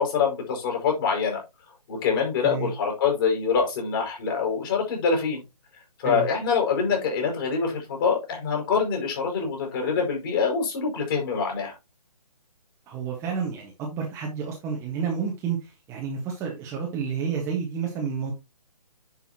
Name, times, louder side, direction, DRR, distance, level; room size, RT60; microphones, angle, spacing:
voice 1, 0.0-1.4 1.9-5.4 6.0-11.8, left 5 dB, 35° left, 5.4 m, -25 dB
voice 2, 2.4-2.7 6.0-6.3 12.9-18.3, right 6 dB, 15° right, 1.4 m, -30 dB
10.0 x 5.7 x 2.9 m
figure-of-eight pair, 145°, 21 cm